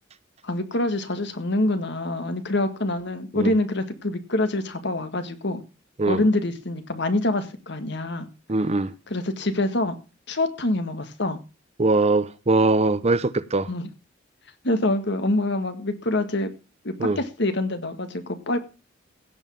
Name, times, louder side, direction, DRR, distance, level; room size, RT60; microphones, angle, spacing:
voice 1, 0.4-5.6 6.1-8.3 9.1-10.0 10.3-11.4 13.7-13.9 14.6-16.5 16.8-18.6, left 2 dB, 60° left, 1.8 m, -25 dB
voice 2, 8.5-8.9 11.8-13.7 17.0-17.2, right 3 dB, 35° right, 0.7 m, -21 dB
16.5 x 5.6 x 7.2 m
head